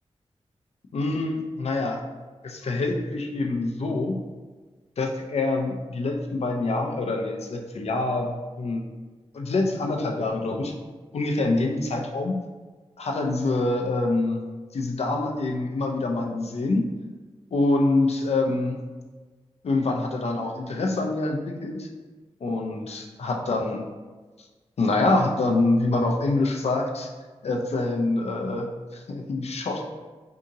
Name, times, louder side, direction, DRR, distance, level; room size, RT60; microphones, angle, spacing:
voice 1, 0.9-2.0 2.4-4.1 5.0-8.8 9.3-10.7 11.1-12.4 13.0-14.4 14.7-16.9 17.5-18.8 19.6-21.9 22.4-23.9 24.8-27.1 27.4-29.8, left 2 dB, 70° left, 2 dB, 0.5 m, -25 dB
2.8 x 2.7 x 3.6 m, 1.3 s
wide cardioid pair, 70°, 11 cm